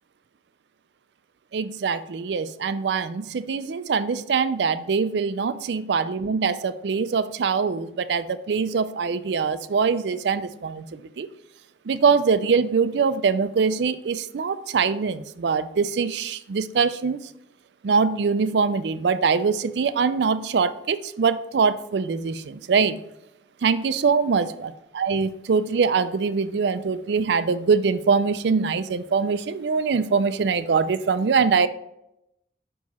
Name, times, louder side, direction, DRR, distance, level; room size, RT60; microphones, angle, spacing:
voice 1, 1.5-10.9 11.2-11.3 11.9-17.2 17.8-23.0 23.6-31.7, right 5 dB, 70° right, 13 dB, 0.4 m, -23 dB
5.8 x 4.6 x 4.2 m, 0.83 s
head